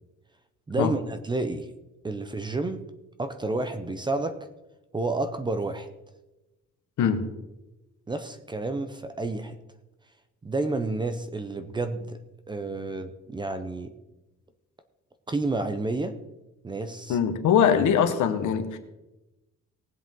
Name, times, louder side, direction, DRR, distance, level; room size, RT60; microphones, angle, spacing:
voice 1, 0.7-1.7 2.0-2.8 3.2-4.4 4.9-5.9 8.1-9.6 10.4-12.2 12.5-13.9 15.3-16.2 16.6-17.2, right 2 dB, 15° right, 9 dB, 0.5 m, -30 dB
voice 2, 17.1-18.8, left 8 dB, 75° left, 7 dB, 1.4 m, -22 dB
19.0 x 7.7 x 3.8 m, 1.0 s
cardioid pair, 180°, 30 cm